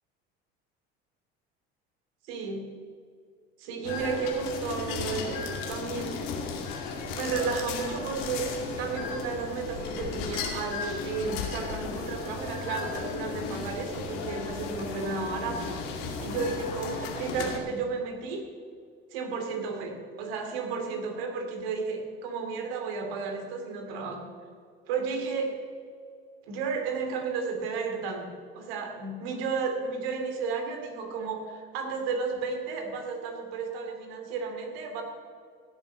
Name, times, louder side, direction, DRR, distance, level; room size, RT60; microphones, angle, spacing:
voice 1, 2.3-2.7 3.6-6.3 7.1-15.7 16.2-18.4 19.1-24.2 24.9-25.6 26.5-28.3 28.5-35.0, right 4 dB, 75° right, 4 dB, 2.7 m, -33 dB
sound 1, 3.8-17.6, left 4 dB, 75° left, 2.4 m, -35 dB
16.0 x 7.5 x 7.8 m, 2.1 s
hypercardioid pair, 70°, 31 cm